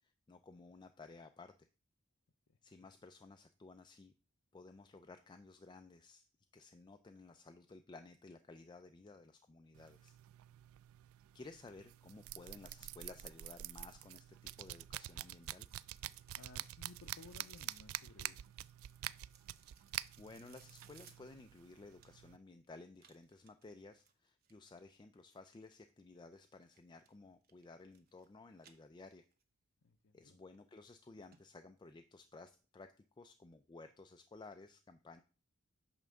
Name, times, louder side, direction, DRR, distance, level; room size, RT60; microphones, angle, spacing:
voice 1, 0.0-1.5 2.6-4.1 4.5-6.3 6.5-10.2 11.3-15.7 20.2-29.2 30.1-35.2, left 3 dB, 20° left, 8 dB, 0.4 m, -56 dB
sound 1, 9.8-22.4, right 14 dB, 75° right, 0.3 m, -48 dB
sound 2, 14.6-22.4 23.0-24.7 26.6-27.1 27.4-28.3 28.6-29.4 29.8-29.9 30.5-30.6 30.9-31.0 31.3-31.4 31.8-31.9, right 7 dB, 45° right, 0.9 m, -66 dB
voice 2, 16.3-18.5 29.8-30.4, left 3 dB, 70° left, 5 dB, 0.6 m, -58 dB
8.8 x 3.4 x 6.3 m, 0.36 s
head